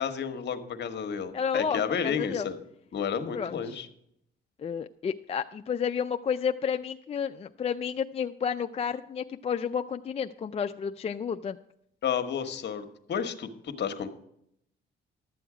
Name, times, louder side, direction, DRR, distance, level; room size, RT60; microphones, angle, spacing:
voice 1, 0.0-2.6 2.9-3.9 12.0-14.1, left 7 dB, 60° left, 8 dB, 1.1 m, -31 dB
voice 2, 1.3-2.5 3.3-3.8 4.6-11.6, left 7 dB, 30° left, 8 dB, 0.4 m, -31 dB
12.0 x 7.8 x 4.9 m, 0.74 s
cardioid pair, 90°, 20 cm